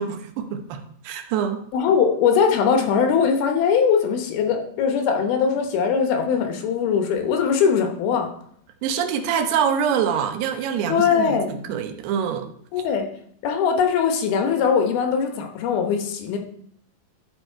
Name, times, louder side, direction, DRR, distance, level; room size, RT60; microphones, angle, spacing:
voice 1, 0.0-1.6 8.8-12.5, right 7 dB, 85° right, 6 dB, 2.9 m, -25 dB
voice 2, 1.7-8.3 10.9-11.7 12.7-13.1 13.4-16.4, left 6 dB, 75° left, 4 dB, 2.9 m, -21 dB
13.0 x 4.8 x 4.5 m, 0.65 s
omnidirectional pair, 4.6 m